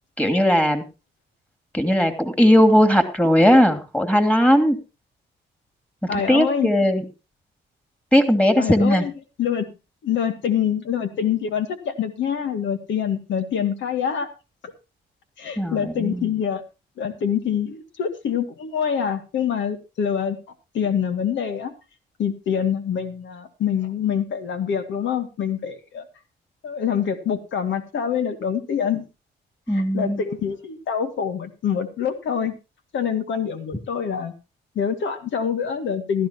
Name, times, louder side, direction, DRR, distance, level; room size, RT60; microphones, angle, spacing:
voice 1, 0.2-0.8 1.7-4.8 6.1-7.0 8.1-9.0 15.6-16.3 29.7-30.2, equal, 5° left, 8 dB, 2.8 m, -18 dB
voice 2, 6.1-6.7 8.6-9.7 10.0-14.3 14.6-14.7 15.4-16.6 17.0-20.4 20.7-21.7 22.2-26.0 26.6-29.1 29.7-32.6 32.9-34.3 34.8-36.3, left 8 dB, 70° left, 8 dB, 2.0 m, -25 dB
16.5 x 13.0 x 2.9 m, 0.29 s
cardioid pair, 90°, 20 cm